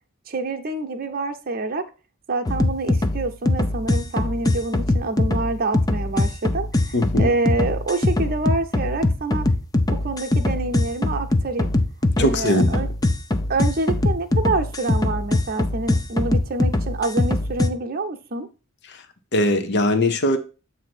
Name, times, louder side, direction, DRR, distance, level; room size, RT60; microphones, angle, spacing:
voice 1, 0.3-1.8 2.3-9.5 9.9-11.7 12.2-12.9 13.5-18.5, right 3 dB, 45° right, 0.8 m, -27 dB
sound 1, 2.5-17.7, left 2 dB, 20° left, 0.5 m, -22 dB
voice 2, 6.9-7.3 12.2-12.9 19.3-20.4, left 1 dB, 55° left, 0.7 m, -20 dB
7.6 x 2.8 x 6.0 m
head